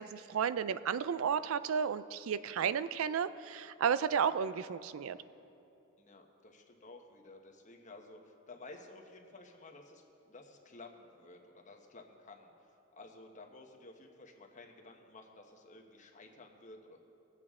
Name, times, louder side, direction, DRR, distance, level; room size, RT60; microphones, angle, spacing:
voice 1, 0.0-5.2, right 7 dB, 80° right, 15 dB, 0.4 m, -33 dB
voice 2, 6.0-12.5 13.0-17.0, left 2 dB, 35° left, 3 dB, 1.1 m, -54 dB
20.5 x 8.3 x 3.6 m, 2.8 s
head